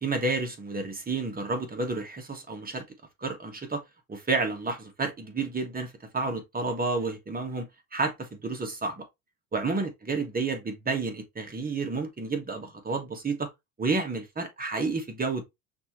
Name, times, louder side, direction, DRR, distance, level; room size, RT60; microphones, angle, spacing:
voice 1, 0.0-2.8 3.2-3.8 4.1-9.0 9.5-13.5 13.8-15.4, right 3 dB, 20° right, 1.5 m, -30 dB
5.9 x 2.9 x 3.0 m
supercardioid pair, 90°, 42 cm